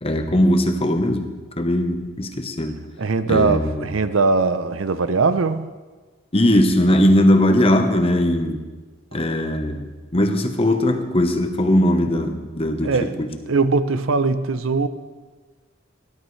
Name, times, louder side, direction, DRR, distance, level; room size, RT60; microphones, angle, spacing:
voice 1, 0.0-2.8 3.3-3.8 6.3-8.6 9.1-13.3, left 1 dB, 30° left, 6 dB, 1.0 m, -19 dB
voice 2, 3.0-5.7 12.8-14.9, right 4 dB, 80° right, 12 dB, 0.7 m, -21 dB
18.0 x 11.5 x 3.3 m, 1.3 s
head